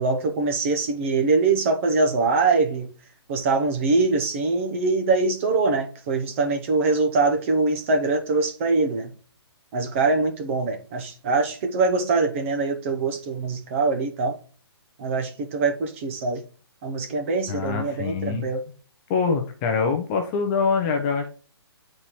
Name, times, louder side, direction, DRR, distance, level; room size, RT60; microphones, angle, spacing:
voice 1, 0.0-2.9 3.3-9.1 9.7-14.4 15.0-16.4 16.8-18.6, right 3 dB, 30° right, 0.7 m, -23 dB
voice 2, 17.5-18.5 19.1-21.3, left 5 dB, 20° left, 0.6 m, -24 dB
9.6 x 4.2 x 3.0 m
hypercardioid pair, 160°, 14 cm